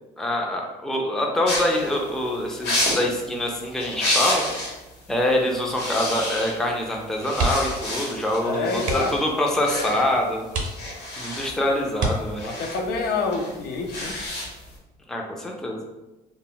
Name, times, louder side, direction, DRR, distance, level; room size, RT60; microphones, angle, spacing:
voice 1, 0.2-4.4 5.1-10.5 11.2-12.5 15.1-15.8, left 1 dB, 5° left, 0 dB, 0.4 m, -25 dB
sound 1, 1.4-4.8 5.1-5.3 5.6-6.8 7.1-14.7, left 1 dB, 85° left, 1.0 m, -30 dB
sound 2, 7.3-7.9 8.1-8.3 8.8-9.3 9.9-10.0 10.5-11.2 11.9-12.7 14.3-14.6 15.0-15.1, right 2 dB, 50° right, 0.6 m, -28 dB
voice 2, 8.4-9.2 12.4-14.2, left 4 dB, 65° left, 3 dB, 0.5 m, -27 dB
2.1 x 2.1 x 3.8 m, 1.1 s
cardioid pair, 110°, 17 cm